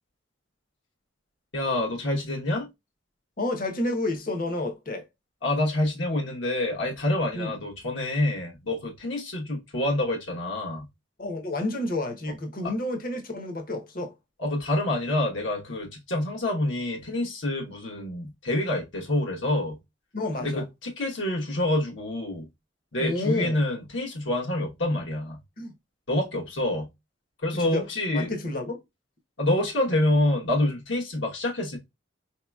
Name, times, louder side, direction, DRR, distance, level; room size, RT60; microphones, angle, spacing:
voice 1, 1.5-2.7 5.4-10.9 12.6-12.7 14.4-19.8 20.4-22.5 22.9-25.4 26.1-26.9 27.4-28.3 29.4-31.8, left 1 dB, 70° left, 1.1 m, -27 dB
voice 2, 3.4-5.1 7.3-7.5 11.2-14.1 20.1-20.6 23.0-23.6 25.6-25.7 27.5-27.8 28.1-28.8, left 2 dB, 45° left, 0.9 m, -30 dB
4.0 x 2.9 x 2.2 m
head